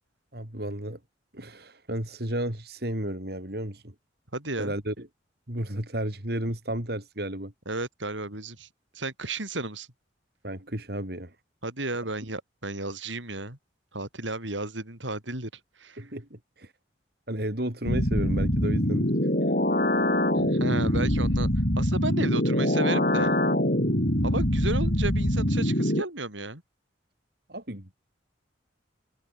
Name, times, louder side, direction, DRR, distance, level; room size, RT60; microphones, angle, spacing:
voice 1, 0.3-1.0 1.3-3.9 4.6-5.1 5.5-7.5 10.4-11.3 16.0-16.7 17.3-19.1 27.5-28.0, right 1 dB, 55° right, 3.9 m, -33 dB
voice 2, 4.3-4.7 7.7-8.7 8.9-9.9 11.6-13.6 13.9-15.5 15.8-16.1 20.4-21.5 21.8-23.3 24.2-26.6, right 2 dB, 85° right, 7.3 m, -33 dB
sound 1, 17.9-26.0, left 1 dB, 50° left, 6.9 m, -24 dB
head